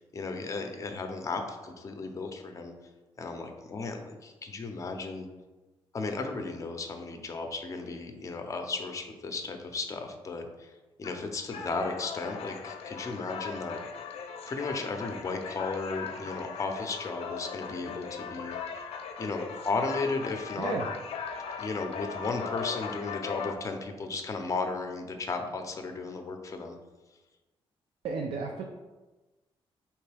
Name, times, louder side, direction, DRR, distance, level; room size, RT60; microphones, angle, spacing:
voice 1, 0.0-2.7 3.2-5.3 5.9-10.7 11.0-13.8 14.5-18.6 19.2-20.7 21.6-26.8, left 3 dB, 35° left, 5 dB, 0.5 m, -35 dB
sound 1, 11.0-23.5, left 6 dB, 80° left, 0.4 m, -39 dB
voice 2, 28.0-28.6, right 4 dB, 75° right, 1 dB, 0.4 m, -33 dB
4.4 x 3.0 x 3.3 m, 1.2 s
cardioid pair, 115°, 10 cm